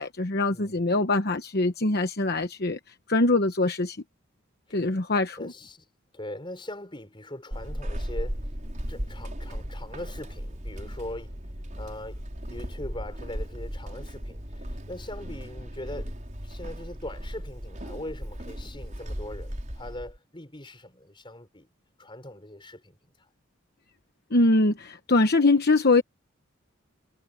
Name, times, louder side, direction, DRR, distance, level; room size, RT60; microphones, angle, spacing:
voice 1, 0.0-4.0 4.7-5.5 24.3-26.0, left 2 dB, 50° left, 1.1 m, -23 dB
voice 2, 0.5-0.8 4.7-5.1 5.4-5.8 6.1-8.4 8.9-11.3 11.8-12.2 12.5-16.2 16.4-21.7 22.0-23.1, left 1 dB, 25° left, 4.5 m, -41 dB
Walk footsteps / Squeak, 7.5-20.2, equal, 35° right, 5.7 m, -36 dB
head